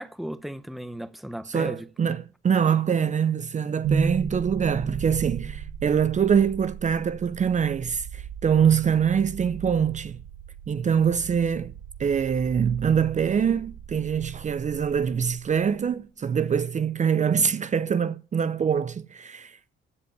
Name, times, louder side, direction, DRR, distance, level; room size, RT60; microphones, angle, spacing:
voice 1, 0.0-1.9 8.6-8.7, right 1 dB, ahead, 0.8 m, -36 dB
voice 2, 1.5-10.2 10.7-11.7 12.0-19.7, right 7 dB, 35° right, 0.6 m, -24 dB
sound 1, 3.8-15.9, right 6 dB, 85° right, 1.3 m, -35 dB
15.5 x 5.1 x 8.5 m
cardioid pair, 90°, 20 cm